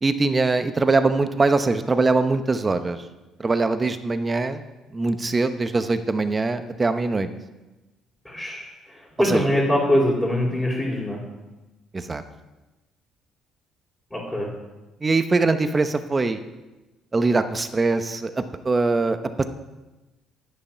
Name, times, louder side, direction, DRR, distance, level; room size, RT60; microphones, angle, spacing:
voice 1, 0.0-3.0 3.4-4.6 4.9-7.3 9.2-9.4 11.9-12.2 15.0-16.4 17.1-19.4, right 3 dB, 25° right, 10 dB, 0.9 m, -22 dB
voice 2, 8.2-11.2 14.1-14.5, left 1 dB, 5° left, -8 dB, 3.3 m, -23 dB
11.0 x 7.0 x 5.7 m, 1.1 s
cardioid pair, 90°, 0 cm